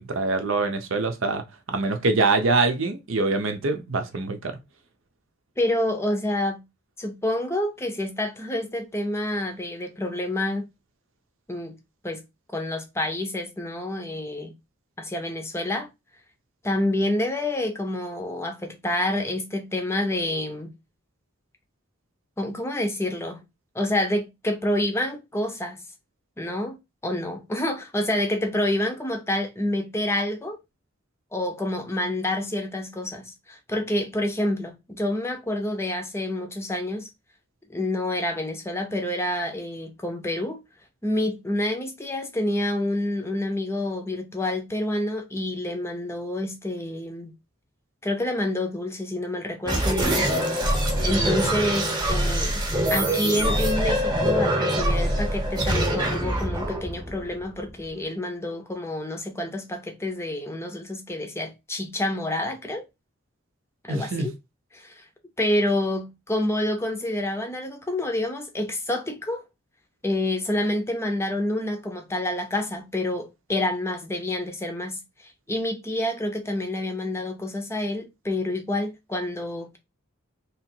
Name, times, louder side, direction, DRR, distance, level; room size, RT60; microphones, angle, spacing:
voice 1, 0.0-1.4 1.7-4.5 63.9-64.3, right 3 dB, 65° right, 0.7 m, -24 dB
voice 2, 5.6-6.6 7.0-10.6 11.5-11.8 12.0-12.2 12.5-14.5 15.0-15.9 16.6-20.7 22.4-23.4 23.7-25.8 26.4-30.6 31.3-37.1 37.7-40.6 41.0-47.3 48.0-62.9 63.8-64.3 64.7-64.9 65.4-69.4 70.0-79.8, left 1 dB, 10° left, 0.6 m, -28 dB
sound 1, 49.7-57.9, right 1 dB, 20° right, 1.0 m, -24 dB
3.2 x 2.9 x 4.4 m
head